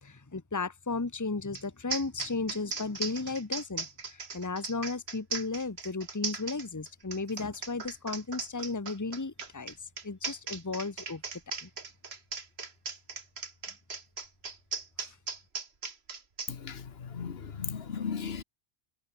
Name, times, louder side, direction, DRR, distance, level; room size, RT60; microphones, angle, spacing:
voice 1, 0.0-11.2 11.6-11.7 15.0-15.2, left 3 dB, 20° left, 1.1 m, -35 dB
sound 1, 1.5-1.6 1.9-16.5, right 4 dB, 85° right, 2.3 m, -38 dB
voice 2, 16.5-16.8 17.1-18.4, left 6 dB, 75° left, 1.4 m, -36 dB
omnidirectional pair, 1.0 m